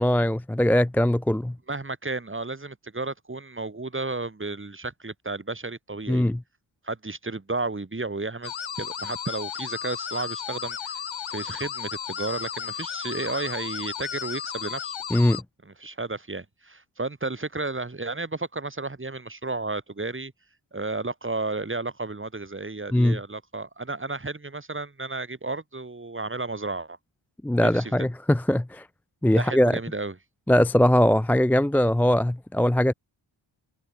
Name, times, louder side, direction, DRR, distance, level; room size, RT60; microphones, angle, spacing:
voice 1, 0.0-1.6 6.1-6.4 15.1-15.4 22.9-23.2 27.4-28.8 29.2-29.8 30.5-32.9, left 1 dB, 5° left, 0.3 m, -21 dB
voice 2, 1.7-6.2 6.8-11.0 11.3-14.9 15.6-20.3 20.7-27.0 27.6-27.9 29.4-30.2, right 3 dB, 25° right, 5.5 m, -32 dB
sound 1, 8.4-15.4, left 8 dB, 70° left, 2.2 m, -34 dB
wide cardioid pair, 90°, 47 cm